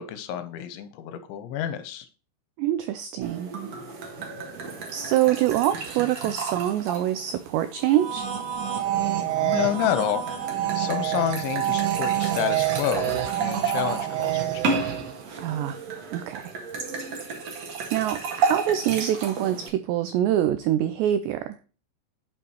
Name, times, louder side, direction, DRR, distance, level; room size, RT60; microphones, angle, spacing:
voice 1, 0.0-2.1 9.4-10.2 10.7-15.0, left 10 dB, 80° left, 11 dB, 2.9 m, -29 dB
voice 2, 2.6-3.5 4.9-8.3 15.4-15.8 16.1-16.5 17.9-21.6, right 12 dB, 90° right, 11 dB, 2.4 m, -25 dB
sound 1, 3.2-19.7, right 4 dB, 55° right, 1.9 m, -33 dB
sound 2, 7.8-15.2, right 12 dB, 75° right, 3.1 m, -27 dB
8.5 x 7.3 x 3.0 m, 0.35 s
omnidirectional pair, 5.7 m